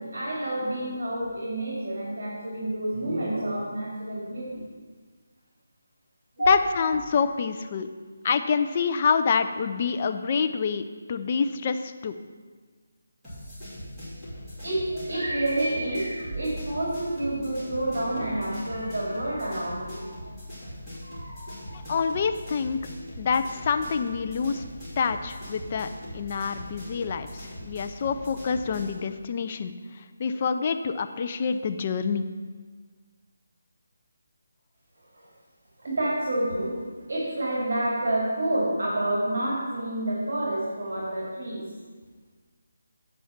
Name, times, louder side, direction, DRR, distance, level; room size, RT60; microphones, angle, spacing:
voice 1, 0.0-4.6 6.4-6.7 14.6-20.1 21.0-22.1 35.1-35.3 35.8-36.8 37.1-41.6, right 1 dB, 60° right, -6 dB, 2.7 m, -29 dB
voice 2, 6.5-7.9 8.2-12.2 21.7-22.8 23.2-24.6 25.0-32.3, left 6 dB, 30° left, 8 dB, 0.4 m, -27 dB
sound 1, 13.2-29.0, equal, ahead, 2.8 m, -41 dB
8.5 x 5.4 x 5.8 m, 1.5 s
figure-of-eight pair, 170°, 0 cm